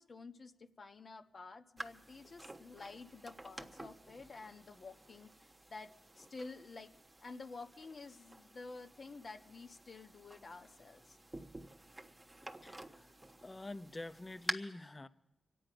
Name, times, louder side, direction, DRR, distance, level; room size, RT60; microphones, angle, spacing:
voice 1, 0.0-5.9 6.2-6.9 7.2-11.2, left 3 dB, 55° left, 6 dB, 1.2 m, -50 dB
sound 1, 1.8-14.5, right 1 dB, 20° right, 1.2 m, -50 dB
voice 2, 12.6-13.2 13.4-15.1, left 2 dB, 30° left, 12 dB, 0.8 m, -47 dB
25.0 x 9.1 x 5.1 m, 0.99 s
supercardioid pair, 40°, 0 cm